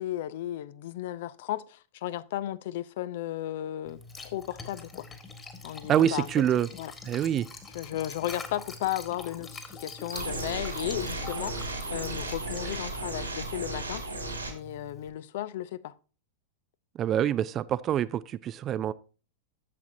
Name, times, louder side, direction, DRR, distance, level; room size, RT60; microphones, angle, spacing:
voice 1, 0.0-5.1 5.6-6.3 6.5-6.9 7.7-14.0 14.5-15.9, left 13 dB, 55° left, 0.5 m, -35 dB
Liquid, 3.9-15.1, left 3 dB, 20° left, 1.6 m, -45 dB
voice 2, 5.9-6.7 7.1-7.5 17.0-18.9, right 10 dB, 30° right, 0.4 m, -26 dB
sound 1, 10.1-14.5, right 2 dB, 85° right, 1.8 m, -35 dB
11.5 x 7.2 x 2.6 m
figure-of-eight pair, 95°, 0 cm